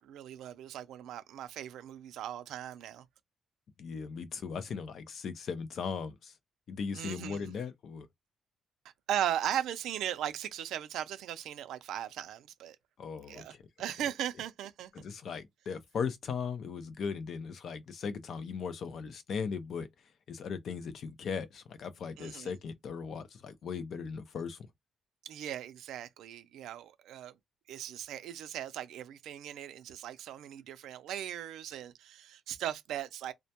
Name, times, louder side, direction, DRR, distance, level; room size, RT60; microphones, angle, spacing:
voice 1, 0.0-3.1 6.9-7.5 9.1-12.8 13.3-14.9 22.2-22.5 25.2-27.3 27.7-33.3, right 11 dB, 90° right, 0.4 m, -38 dB
voice 2, 3.8-6.4 6.7-8.1 13.0-13.6 14.9-24.7, left 6 dB, 55° left, 0.4 m, -38 dB
2.1 x 2.1 x 2.8 m
cardioid pair, 140°, 0 cm